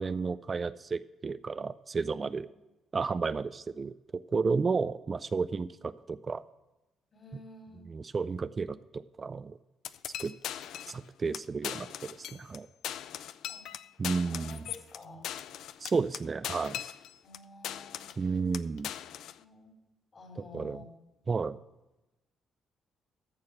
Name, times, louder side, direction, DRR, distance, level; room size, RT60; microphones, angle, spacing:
voice 1, 0.0-2.5 2.9-3.9 4.3-6.4 7.9-9.6 10.2-10.3 10.9-12.7 14.0-14.6 15.8-16.8 18.2-18.9 20.5-20.8 21.3-21.6, right 4 dB, 35° right, 14 dB, 0.3 m, -32 dB
voice 2, 7.1-7.8 13.5-13.7 14.3-15.3 17.2-18.2 19.4-19.8 20.1-20.9, left 3 dB, 40° left, 1 dB, 3.4 m, -51 dB
sound 1, 9.8-11.0 11.3-11.4 11.6-12.6 12.8-17.4 17.6-18.2 18.5-19.4, left 11 dB, 80° left, 0.4 m, -39 dB
14.5 x 4.9 x 7.1 m, 1.0 s
cardioid pair, 90°, 0 cm